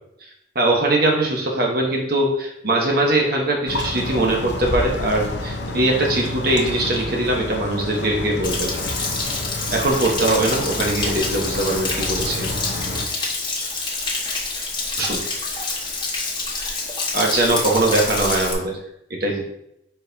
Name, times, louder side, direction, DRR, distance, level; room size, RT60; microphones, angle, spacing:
voice 1, 0.5-8.7 9.7-12.6 13.1-13.7 15.0-15.2 16.5-16.7 17.1-18.8 19.2-19.4, right 2 dB, 55° right, 0 dB, 1.2 m, -21 dB
sound 1, 3.7-13.1, left 2 dB, 70° left, 0.8 m, -29 dB
Stream / Splash splatter / Trickle dribble, 8.4-18.5, left 3 dB, 25° left, 1.3 m, -27 dB
11.0 x 4.4 x 2.7 m, 0.79 s
head